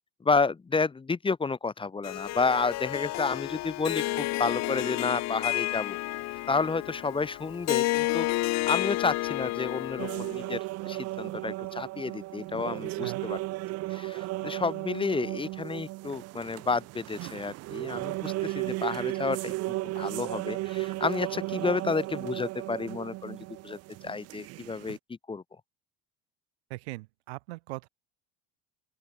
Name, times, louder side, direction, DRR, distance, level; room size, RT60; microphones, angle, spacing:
voice 1, 0.2-6.0 6.5-13.4 13.9-23.8 24.0-25.4, left 4 dB, 15° left, 1.5 m, -31 dB
Harp, 2.0-10.5, left 18 dB, 60° left, 2.0 m, -31 dB
sound 1, 10.0-25.0, right 19 dB, 55° right, 0.7 m, -35 dB
voice 2, 12.9-13.2 26.7-27.9, right 22 dB, 90° right, 4.3 m, -40 dB
open air
supercardioid pair, 115°, 31 cm